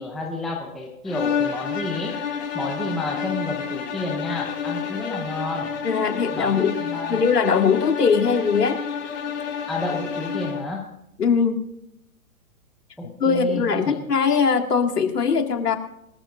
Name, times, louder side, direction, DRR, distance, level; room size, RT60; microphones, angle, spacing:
voice 1, 0.0-2.2 2.5-5.7 6.3-7.2 9.7-10.9 13.0-14.0, left 2 dB, ahead, -1 dB, 0.5 m, -30 dB
sound 1, 1.0-10.7, left 7 dB, 50° left, 6.3 m, -30 dB
voice 2, 5.8-6.8 7.1-8.8 11.2-11.6 13.2-15.8, left 5 dB, 75° left, 5 dB, 2.2 m, -21 dB
24.5 x 14.0 x 2.6 m, 0.82 s
hypercardioid pair, 135°, 47 cm